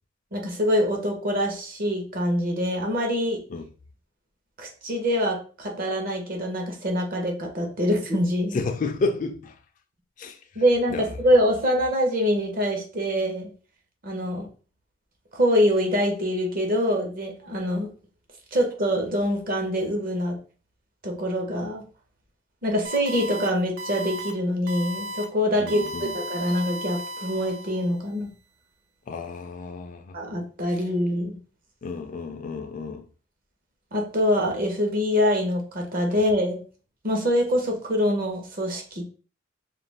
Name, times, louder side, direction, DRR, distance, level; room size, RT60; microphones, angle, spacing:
voice 1, 0.3-3.4 4.6-8.6 10.6-13.5 14.0-14.5 15.3-17.9 18.5-20.4 21.0-21.8 22.6-25.8 26.1-28.3 30.1-31.4 33.9-36.6 37.0-39.0, equal, 50° right, 0.8 m, -24 dB
voice 2, 8.5-9.6 10.2-10.4 10.9-11.1 25.6-26.1 29.1-30.2 31.8-33.1, left 3 dB, 40° left, 0.3 m, -31 dB
sound 1, 22.8-23.5 23.8-24.3 24.7-25.2 25.7-28.0, right 1 dB, 80° right, 0.7 m, -35 dB
2.4 x 2.3 x 3.2 m
head